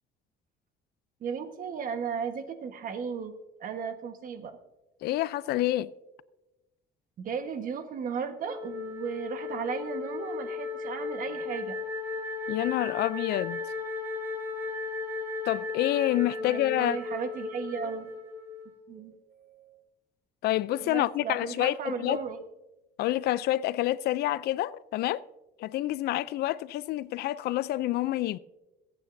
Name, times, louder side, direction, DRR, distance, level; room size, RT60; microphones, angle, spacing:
voice 1, 1.2-3.3 3.6-4.6 7.2-11.8 16.4-18.1 18.9-19.8 20.8-22.4, right 6 dB, 55° right, 1.3 m, -35 dB
voice 2, 5.0-5.9 12.5-13.6 15.4-17.0 20.4-22.2 23.0-25.3 25.6-28.4, left 15 dB, 70° left, 0.4 m, -28 dB
Wind instrument woodwind instrument, 8.4-18.8, left 4 dB, 15° right, 4.1 m, -36 dB
22.0 x 8.9 x 2.6 m
cardioid pair, 110°, 17 cm